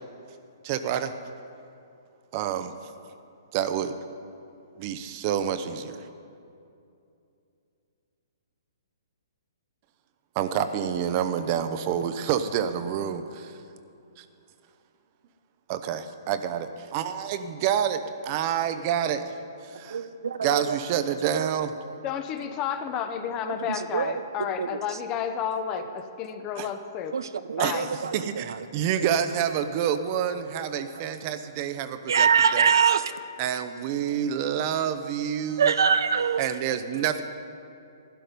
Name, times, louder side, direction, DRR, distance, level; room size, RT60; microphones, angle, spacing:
voice 1, 0.6-1.1 2.3-2.7 3.5-4.0 4.8-6.1 10.3-13.6 14.2-14.3 15.7-19.3 19.6-20.1 20.4-21.7 26.6-26.7 27.6-32.7 33.4-35.7 36.4-37.2, right 9 dB, 40° right, 10 dB, 0.7 m, -28 dB
voice 2, 19.9-20.8 21.2-21.5 23.9-24.1 24.6-24.7 27.1-28.2 32.1-33.0 35.6-36.4, right 6 dB, 75° right, 12 dB, 0.5 m, -23 dB
voice 3, 22.0-27.2 27.6-27.9, left 8 dB, 30° left, 8 dB, 0.8 m, -31 dB
12.0 x 11.0 x 5.3 m, 2.6 s
hypercardioid pair, 140°, 2 cm